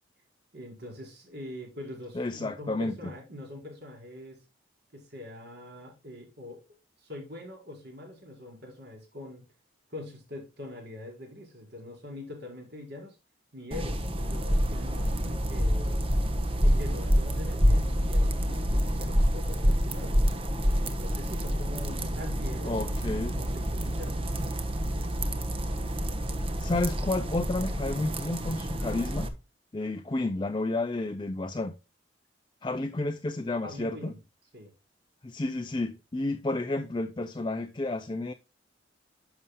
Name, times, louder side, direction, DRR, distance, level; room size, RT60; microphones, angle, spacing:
voice 1, 0.5-4.4 4.9-6.6 7.0-9.4 9.9-13.2 13.5-16.0 16.6-20.2 20.8-24.2 33.6-34.2 34.5-34.7, left 1 dB, 60° right, 4.8 m, -43 dB
voice 2, 2.1-2.9 22.6-23.3 26.6-29.3 29.7-31.7 32.6-34.1 35.2-38.3, left 2 dB, 25° left, 0.5 m, -31 dB
sound 1, 13.7-29.3, equal, 30° right, 1.0 m, -27 dB
11.0 x 6.9 x 2.2 m
head